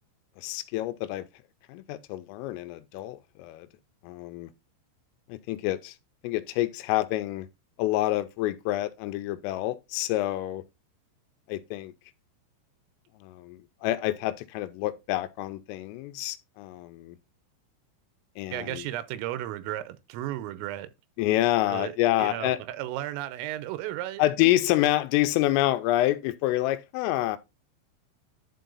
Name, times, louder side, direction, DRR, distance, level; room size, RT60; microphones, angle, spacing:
voice 1, 0.4-1.3 1.7-3.7 4.0-4.5 5.3-6.0 6.2-7.5 7.8-10.6 11.5-11.9 13.2-17.2 18.4-18.9 21.2-22.6 24.2-27.4, left 15 dB, 90° left, 3.5 m, -27 dB
voice 2, 18.5-20.9 21.7-21.9 22.2-24.5, right 14 dB, 90° right, 3.6 m, -34 dB
11.5 x 4.6 x 4.0 m
omnidirectional pair, 5.7 m